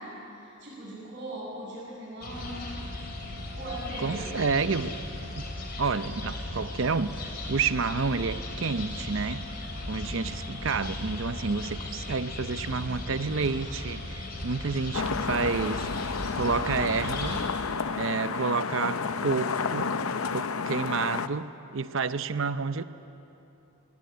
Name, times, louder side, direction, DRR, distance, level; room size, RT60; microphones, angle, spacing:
voice 1, 0.0-2.7 3.5-4.3, right 1 dB, 40° right, 6.5 m, -39 dB
sound 1, 2.2-17.4, left 1 dB, 45° left, 3.6 m, -37 dB
voice 2, 4.0-5.0 5.3-5.5 5.8-9.6 9.9-15.9 16.3-17.4 18.0-19.9 20.3-22.8, right 4 dB, 60° right, 0.7 m, -29 dB
sound 2, 14.9-21.3, left 5 dB, 75° left, 0.7 m, -31 dB
23.5 x 17.0 x 9.4 m
head